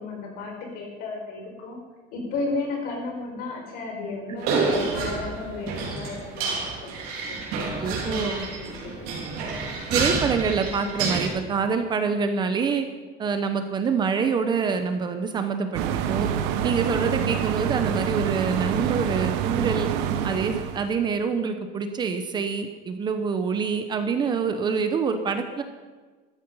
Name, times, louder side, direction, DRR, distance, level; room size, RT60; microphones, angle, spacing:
voice 1, 0.0-1.8 2.1-6.9 7.3-7.4 7.8-8.9, left 3 dB, 55° left, 1 dB, 5.0 m, -33 dB
sound 1, 4.4-11.3, right 4 dB, 60° right, 4.1 m, -29 dB
voice 2, 7.8-8.4 9.9-12.9 13.2-16.3 16.6-19.9 20.2-25.6, right 5 dB, 25° right, 7 dB, 0.8 m, -26 dB
sound 2, 15.7-20.9, right 9 dB, 80° right, 1.1 m, -26 dB
14.0 x 13.5 x 5.5 m, 1.3 s
cardioid pair, 170°, 18 cm